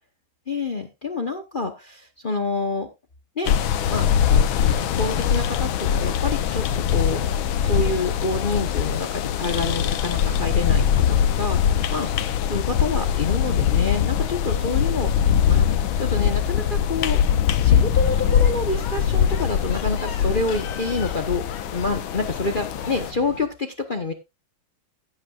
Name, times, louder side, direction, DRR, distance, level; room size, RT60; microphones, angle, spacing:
voice 1, 0.5-2.9 3.4-3.6 3.9-7.2 7.6-12.1 12.4-15.1 15.5-17.2 17.6-21.4 21.7-24.1, left 3 dB, 35° left, 8 dB, 0.8 m, -28 dB
sound 1, 3.5-23.1, left 8 dB, 75° left, 1.6 m, -22 dB
sound 2, 18.0-23.5, left 5 dB, 60° left, 2.1 m, -39 dB
15.5 x 8.6 x 2.5 m, 0.23 s
omnidirectional pair, 2.2 m